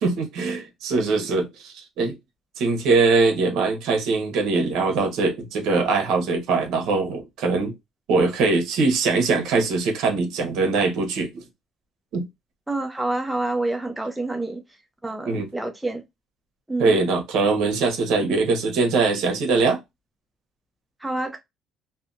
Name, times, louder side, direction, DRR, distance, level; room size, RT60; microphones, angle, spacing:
voice 1, 0.0-2.1 2.6-7.7 8.1-11.4 12.1-12.3 15.3-15.5 16.8-19.8, right 4 dB, 75° right, 0.9 m, -22 dB
voice 2, 12.7-14.6 15.0-16.0 16.7-16.9 21.0-21.4, right 2 dB, 5° right, 0.4 m, -27 dB
2.7 x 2.2 x 2.4 m
cardioid pair, 125°, 0 cm